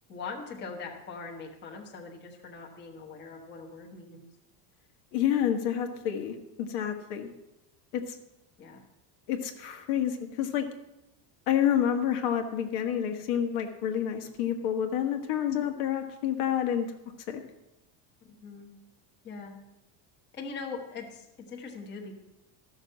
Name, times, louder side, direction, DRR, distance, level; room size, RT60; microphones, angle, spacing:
voice 1, 0.1-4.2 8.6-8.8 18.2-18.7 19.2-19.5 20.3-22.1, left 4 dB, 20° left, 0 dB, 1.2 m, -41 dB
voice 2, 5.1-7.3 7.9-8.2 9.3-10.7 11.5-16.9 17.3-17.4, left 9 dB, 70° left, 5 dB, 1.6 m, -29 dB
13.5 x 6.5 x 7.4 m, 0.91 s
cardioid pair, 180°, 48 cm